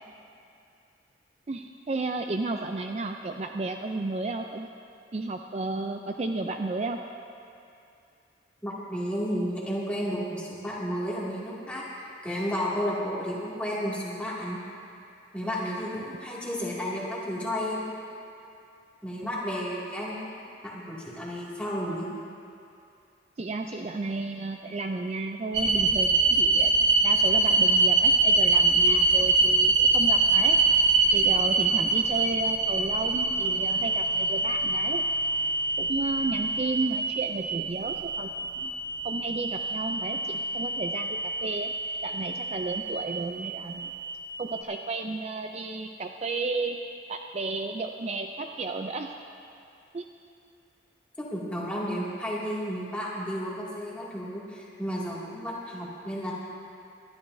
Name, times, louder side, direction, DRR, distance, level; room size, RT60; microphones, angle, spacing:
voice 1, 1.5-4.7 5.1-7.0 19.2-19.3 23.4-26.7 27.0-30.6 31.1-35.0 35.8-38.7 39.0-41.7 42.0-44.0 44.4-46.8 47.1-49.1 49.9-50.0, right 3 dB, 35° right, 5 dB, 0.4 m, -33 dB
voice 2, 8.6-14.6 15.3-17.9 19.0-22.1 51.2-56.3, equal, 5° left, -7 dB, 2.3 m, -32 dB
sound 1, 25.5-44.6, right 3 dB, 75° right, 1.1 m, -24 dB
24.5 x 11.5 x 2.7 m, 2.6 s
head